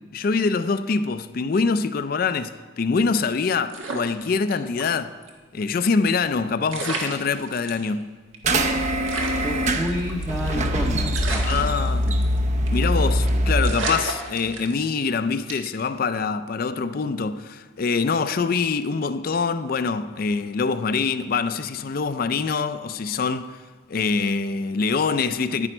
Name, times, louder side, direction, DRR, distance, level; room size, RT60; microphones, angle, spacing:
voice 1, 0.1-5.2 5.5-8.1 11.4-12.1 12.7-23.6 23.9-25.7, left 4 dB, 45° left, 0.4 m, -24 dB
sound 1, 3.7-4.9 5.2-5.3 6.3-6.4 6.7-7.9 8.3-8.4 8.6-8.7 9.1-10.6 11.1-12.4 12.7-13.0 13.3-13.4 13.6-15.0 15.5-15.8, right 3 dB, 80° right, 1.6 m, -32 dB
sound 2, 8.4-13.7, equal, 35° right, 0.6 m, -23 dB
voice 2, 9.3-11.5, equal, 5° right, 0.7 m, -29 dB
10.5 x 10.0 x 4.4 m
head